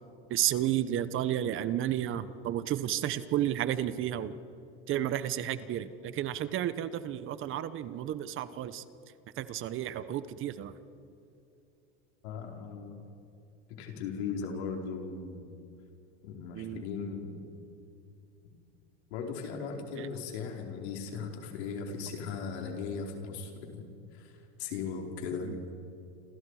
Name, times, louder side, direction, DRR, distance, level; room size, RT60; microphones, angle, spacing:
voice 1, 0.3-4.3 4.9-8.8 9.4-10.7 16.5-16.8 20.0-20.1 25.4-25.6, right 11 dB, 40° right, 14 dB, 1.1 m, -32 dB
voice 2, 12.2-13.0 13.8-15.5 16.2-17.4 19.1-23.8 24.1-24.3 24.6-25.6, left 5 dB, 80° left, 1 dB, 4.7 m, -38 dB
28.0 x 28.0 x 5.0 m, 2.7 s
supercardioid pair, 130°, 32 cm